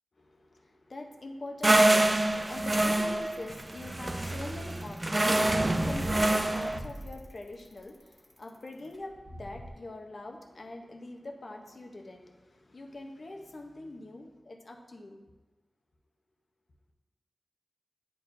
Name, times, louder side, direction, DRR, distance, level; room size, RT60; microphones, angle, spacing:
voice 1, 0.2-15.3, left 2 dB, 55° left, 3 dB, 0.8 m, -43 dB
Bicycle, 1.6-9.7, equal, 20° left, 1.3 m, -45 dB
sound 1, 1.6-6.8, right 1 dB, 30° right, 0.4 m, -26 dB
9.7 x 4.6 x 2.6 m, 1.2 s
wide cardioid pair, 75°, 0 cm